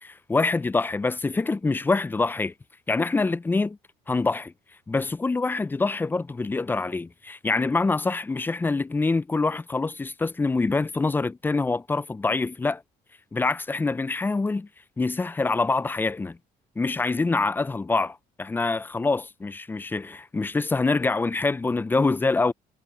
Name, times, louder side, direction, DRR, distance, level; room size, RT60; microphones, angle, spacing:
voice 1, 0.0-2.5 2.9-3.8 4.1-4.5 4.9-12.8 13.3-14.7 15.0-16.4 16.8-22.5, left 3 dB, 10° left, 0.3 m, -25 dB
cardioid pair, 110°, 17 cm